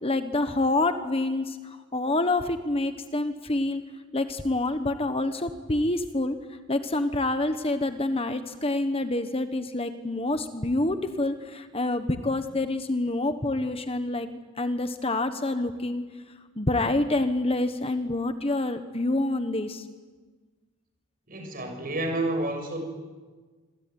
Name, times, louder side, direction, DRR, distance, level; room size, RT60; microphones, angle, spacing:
voice 1, 0.0-3.8 4.1-6.4 6.7-16.0 16.5-19.8, left 2 dB, 25° left, 9 dB, 1.3 m, -27 dB
voice 2, 21.3-22.8, right 2 dB, 40° right, 4 dB, 6.6 m, -29 dB
27.5 x 22.5 x 9.5 m, 1.4 s
head